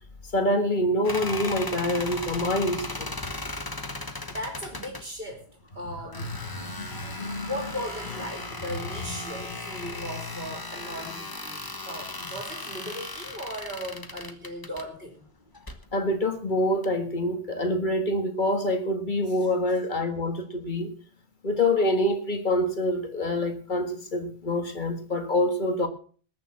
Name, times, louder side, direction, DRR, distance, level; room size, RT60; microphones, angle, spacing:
voice 1, 0.3-3.1 6.5-7.5 15.9-20.9 21.4-25.9, left 1 dB, 45° left, 1.9 m, -26 dB
sound 1, 1.0-5.0 6.1-14.9 15.5-15.8 16.8-16.9, left 2 dB, 20° left, 1.2 m, -37 dB
voice 2, 4.1-6.3 7.4-15.3 19.3-19.5, equal, 60° right, 3.8 m, -37 dB
20.0 x 7.0 x 5.9 m
omnidirectional pair, 1.1 m